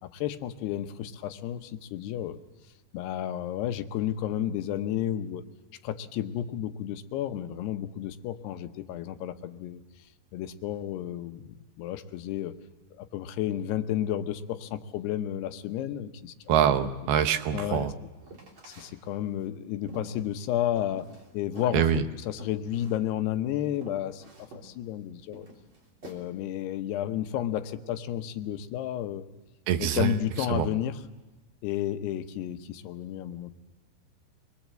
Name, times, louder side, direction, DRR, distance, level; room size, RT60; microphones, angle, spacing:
voice 1, 0.0-2.4 2.9-5.4 5.8-9.8 10.3-12.6 13.0-16.9 17.5-17.9 18.6-24.2 24.5-25.5 26.0-29.3 29.8-31.0 31.6-33.5, left 11 dB, 90° left, 9 dB, 3.1 m, -32 dB
voice 2, 16.5-17.9 21.7-22.0 29.7-30.1 30.5-30.7, right 9 dB, 80° right, 9 dB, 2.9 m, -24 dB
sound 1, 18.2-18.9 19.4-21.3 21.5-21.8 22.4-23.0 23.3-23.4 23.7-24.7 25.3-26.2, right 2 dB, 35° right, 3.7 m, -47 dB
25.5 x 21.0 x 7.6 m, 1.2 s
omnidirectional pair, 4.6 m